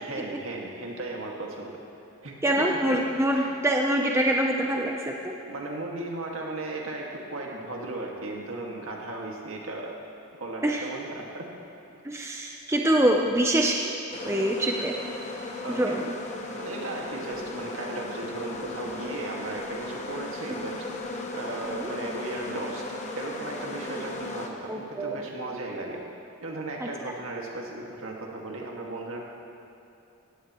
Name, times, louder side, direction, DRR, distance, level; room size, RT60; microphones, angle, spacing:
voice 1, 0.0-1.7 2.2-3.0 3.3-3.6 5.4-10.0 10.4-11.6 15.6-16.0 16.6-20.8 21.3-22.8 23.2-26.0 26.4-29.2, right 2 dB, 65° right, -1 dB, 2.0 m, -36 dB
voice 2, 2.4-5.3 10.6-10.8 12.0-13.9 14.2-15.0 15.8-16.0 20.5-20.6 21.6-21.8 24.7-25.2 26.8-26.9, right 1 dB, 10° right, 0 dB, 0.7 m, -25 dB
sound 1, 14.1-24.5, left 2 dB, 30° left, 1.1 m, -36 dB
17.5 x 16.0 x 3.1 m, 2.8 s
head